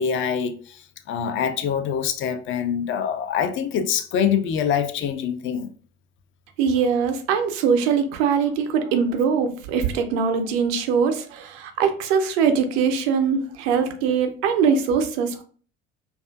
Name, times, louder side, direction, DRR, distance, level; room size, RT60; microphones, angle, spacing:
voice 1, 0.0-5.7, left 7 dB, 35° left, 0.4 m, -25 dB
voice 2, 6.6-15.4, right 6 dB, 65° right, 0.5 m, -22 dB
2.4 x 2.4 x 2.2 m
figure-of-eight pair, 55°, 34 cm